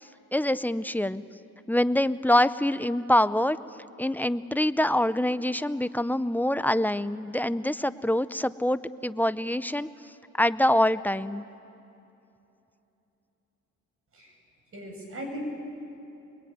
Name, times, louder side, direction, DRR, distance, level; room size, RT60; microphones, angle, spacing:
voice 1, 0.3-1.2 1.7-3.6 4.0-9.9 10.4-11.4, left 1 dB, 5° left, 14 dB, 0.6 m, -25 dB
voice 2, 14.7-15.4, equal, 45° right, 2 dB, 7.6 m, -38 dB
26.0 x 21.5 x 9.5 m, 2.8 s
cardioid pair, 90°, 30 cm